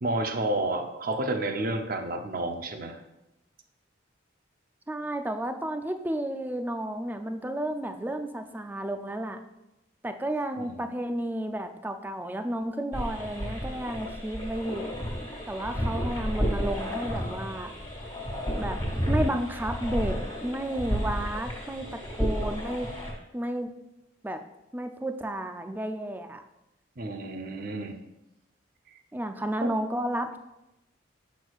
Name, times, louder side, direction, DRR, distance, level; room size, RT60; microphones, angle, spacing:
voice 1, 0.0-3.0 10.6-10.8 27.0-27.9 29.6-29.7, right 2 dB, 45° right, 5 dB, 0.6 m, -30 dB
voice 2, 4.9-9.4 10.0-15.0 15.5-17.7 18.6-18.8 19.1-22.9 23.3-23.7 24.2-24.4 24.7-26.4 29.1-30.4, right 1 dB, 10° right, 7 dB, 0.3 m, -32 dB
sound 1, 12.9-23.1, equal, 25° left, 2.0 m, -32 dB
8.0 x 6.2 x 2.4 m, 0.92 s
head